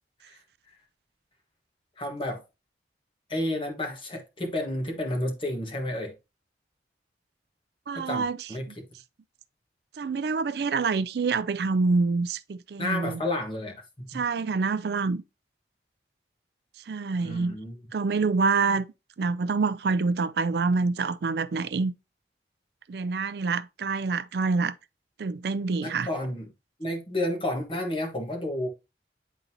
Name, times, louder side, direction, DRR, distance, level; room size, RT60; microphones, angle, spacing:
voice 1, 2.0-2.4 3.3-6.1 7.9-8.7 12.8-14.2 17.2-17.8 25.8-26.5 26.8-28.7, left 1 dB, 30° left, 1.4 m, -31 dB
voice 2, 7.9-8.8 10.0-13.2 14.1-15.2 16.8-17.6 17.9-18.9 19.2-21.9 22.9-24.7 25.2-26.1, right 4 dB, 65° right, 0.4 m, -26 dB
9.3 x 3.9 x 2.8 m
head